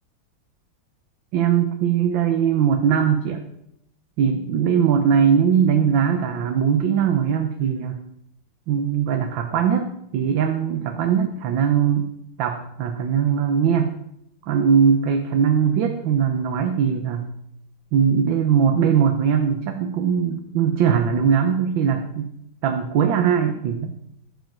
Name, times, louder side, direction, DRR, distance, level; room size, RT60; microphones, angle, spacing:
voice 1, 1.3-3.4 4.2-8.0 8.7-12.1 12.4-13.9 14.4-17.3 17.9-22.3 22.6-24.0, right 7 dB, 70° right, 6 dB, 1.6 m, -20 dB
14.5 x 7.8 x 6.0 m, 0.78 s
omnidirectional pair, 2.2 m